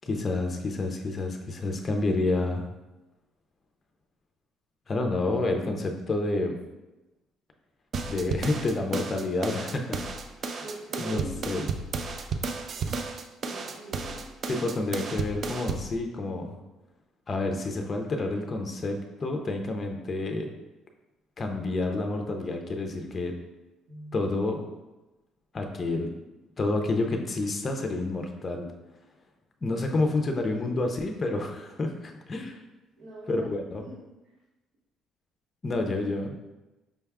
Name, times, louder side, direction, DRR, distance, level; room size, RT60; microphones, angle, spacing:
voice 1, 0.1-2.6 4.9-6.6 8.1-10.1 10.4-10.6 11.0-11.2 11.5-11.7 14.5-16.6 17.3-20.5 21.4-23.3 24.1-24.6 25.5-26.1 26.6-28.7 29.6-32.6 33.3-33.8 35.6-36.4, left 2 dB, 30° left, 3 dB, 0.5 m, -29 dB
sound 1, 7.9-15.9, right 4 dB, 45° right, 0.3 m, -33 dB
voice 2, 10.6-11.3 13.5-14.3 23.9-24.2 33.0-33.5 33.9-34.0 35.7-36.1, right 2 dB, 80° right, -8 dB, 1.1 m, -42 dB
5.2 x 2.3 x 3.4 m, 1.0 s
cardioid pair, 130°, 0 cm